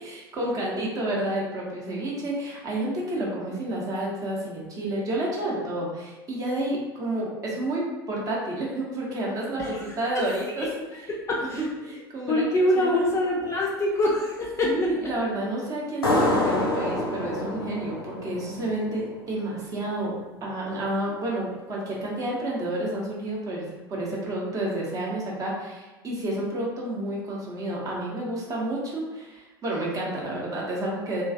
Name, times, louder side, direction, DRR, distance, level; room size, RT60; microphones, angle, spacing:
voice 1, 0.0-10.7 11.4-12.4 12.8-13.1 14.6-31.2, right 1 dB, 30° right, -3 dB, 0.7 m, -30 dB
voice 2, 10.9-11.7 12.3-15.2, left 1 dB, 25° left, -3 dB, 0.4 m, -25 dB
sound 1, 16.0-19.3, left 2 dB, 75° left, 0.5 m, -27 dB
2.4 x 2.3 x 2.5 m, 1.1 s
figure-of-eight pair, 75°, 12 cm